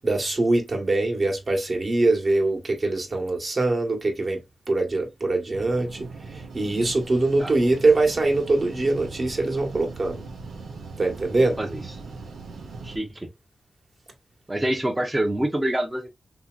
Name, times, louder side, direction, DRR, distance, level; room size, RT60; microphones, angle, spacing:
voice 1, 0.0-4.4 4.7-6.1 6.3-10.2 11.0-11.6, right 2 dB, 50° right, 1.1 m, -23 dB
sound 1, 5.5-13.0, right 4 dB, 90° right, 0.7 m, -39 dB
voice 2, 12.8-13.3 14.5-16.1, right 1 dB, 20° right, 0.7 m, -26 dB
2.9 x 2.7 x 2.3 m
cardioid pair, 45°, 0 cm